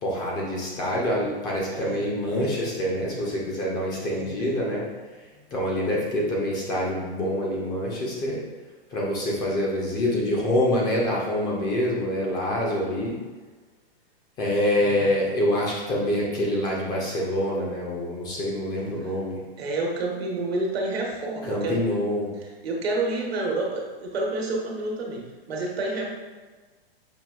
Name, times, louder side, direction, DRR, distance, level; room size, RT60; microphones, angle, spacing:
voice 1, 0.0-4.9 5.2-5.3 5.5-8.4 8.9-13.2 14.4-19.4 21.4-22.3, left 1 dB, 15° left, -3 dB, 0.3 m, -26 dB
voice 2, 1.7-2.1 4.0-4.5 14.8-15.1 19.6-21.9 22.4-26.1, right 2 dB, 90° right, 0 dB, 1.0 m, -29 dB
5.7 x 2.3 x 2.3 m, 1.3 s
hypercardioid pair, 140°, 30 cm